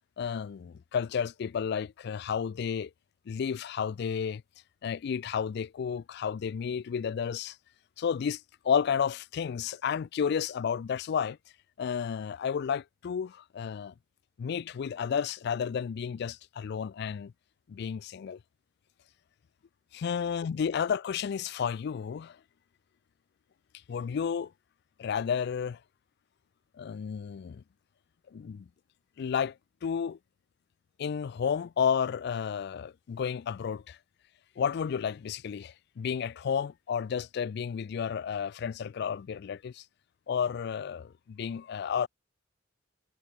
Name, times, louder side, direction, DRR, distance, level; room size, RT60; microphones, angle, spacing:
voice 1, 0.2-2.9 3.3-4.4 4.8-7.6 8.0-11.4 11.8-13.9 14.4-17.3 17.7-18.4 19.9-22.4 23.9-24.5 25.0-25.8 26.8-27.6 28.3-28.7 29.2-29.6 29.8-30.2 31.0-34.0 34.6-39.8 40.3-42.1, left 7 dB, 60° left, 0.3 m, -32 dB
head